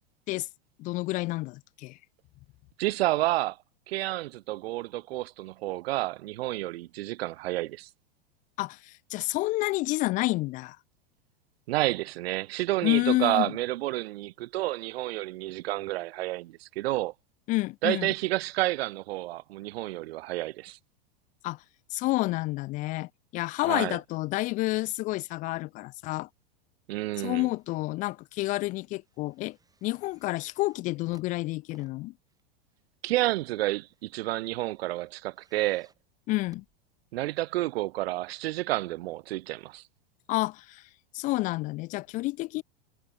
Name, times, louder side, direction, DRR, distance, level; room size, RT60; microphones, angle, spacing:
voice 1, 0.8-2.0 8.6-10.8 12.8-13.5 17.5-18.1 21.4-21.6 21.9-26.3 27.2-29.6 29.8-32.1 36.3-36.6 40.3-40.8 41.1-42.6, left 20 dB, 25° left, 0.3 m, -29 dB
voice 2, 2.8-3.6 3.9-7.9 11.7-17.1 17.8-20.8 23.7-24.0 26.9-27.5 33.0-35.9 37.1-39.8, right 17 dB, 80° right, 0.5 m, -30 dB
sound 1, 27.1-27.7 28.1-37.5 38.3-38.4, right 4 dB, 10° right, 6.1 m, -66 dB
supercardioid pair, 135°, 30 cm